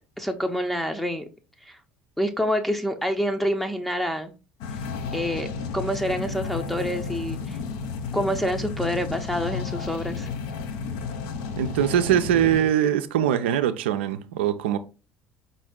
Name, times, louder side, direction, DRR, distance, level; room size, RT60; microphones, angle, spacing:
voice 1, 0.2-1.3 1.7-1.8 2.2-4.3 5.1-5.5 5.7-7.6 8.1-10.3, equal, 5° left, 0.6 m, -27 dB
sound 1, 4.6-12.6, left 5 dB, 70° left, 0.6 m, -32 dB
voice 2, 11.6-14.8, right 10 dB, 75° right, 0.4 m, -22 dB
5.2 x 2.6 x 3.6 m
hypercardioid pair, 60°, 6 cm